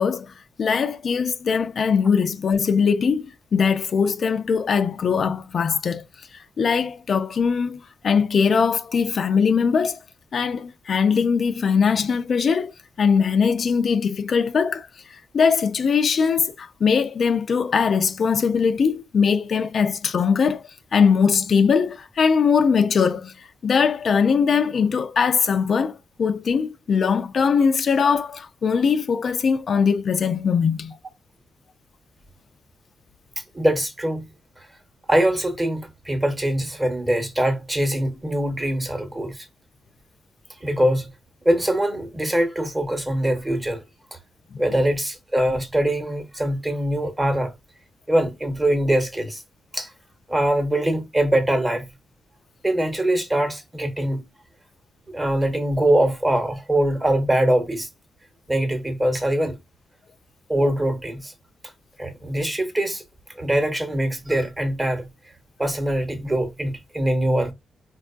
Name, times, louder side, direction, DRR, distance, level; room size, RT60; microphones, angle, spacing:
voice 1, 0.0-6.0 6.3-10.0 10.3-12.7 13.0-14.9 15.3-20.6 20.9-23.3 23.6-30.9, left 6 dB, 50° left, 0.3 m, -21 dB
voice 2, 33.5-34.3 35.1-39.5 40.6-41.1 41.4-43.8 44.6-47.5 48.1-49.4 49.7-49.9 50.3-51.9 52.6-54.2 55.1-57.9 58.5-59.6 60.5-61.3 62.0-63.0 63.4-65.1 65.6-67.5, right 1 dB, 15° right, 0.9 m, -23 dB
4.5 x 2.3 x 2.4 m
cardioid pair, 125°, 0 cm